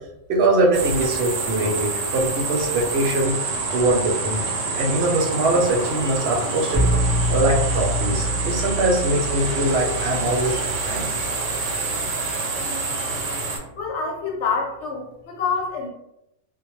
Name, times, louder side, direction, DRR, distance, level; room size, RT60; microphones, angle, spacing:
voice 1, 0.3-3.3 3.7-4.4 4.8-6.8 7.3-11.1, right 2 dB, 65° right, -1 dB, 0.7 m, -22 dB
sound 1, 0.7-13.6, right 3 dB, 90° right, 1.0 m, -27 dB
sound 2, 6.7-12.5, equal, 10° right, 0.4 m, -27 dB
voice 2, 13.7-15.9, left 5 dB, 75° left, 0 dB, 0.9 m, -26 dB
2.2 x 2.0 x 2.9 m, 0.85 s
omnidirectional pair, 1.2 m